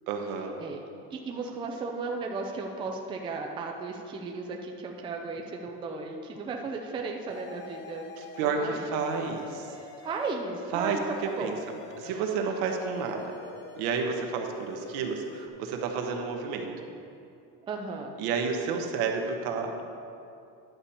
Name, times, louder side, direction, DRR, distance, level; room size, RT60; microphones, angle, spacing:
voice 1, 0.1-0.5 8.2-9.7 10.7-11.0 11.4-11.5 12.0-13.3 13.8-16.7 18.2-19.8, right 5 dB, 70° right, 3 dB, 1.2 m, -30 dB
voice 2, 1.1-8.1 8.4-9.0 9.7-11.6 12.0-12.5 17.7-18.1, right 3 dB, 15° right, 2 dB, 0.4 m, -35 dB
sound 1, 7.3-8.6 8.9-10.4 10.8-12.3 12.6-14.1 14.5-15.5, left 4 dB, 30° left, 0.6 m, -46 dB
10.5 x 6.9 x 4.3 m, 2.6 s
cardioid pair, 165°, 38 cm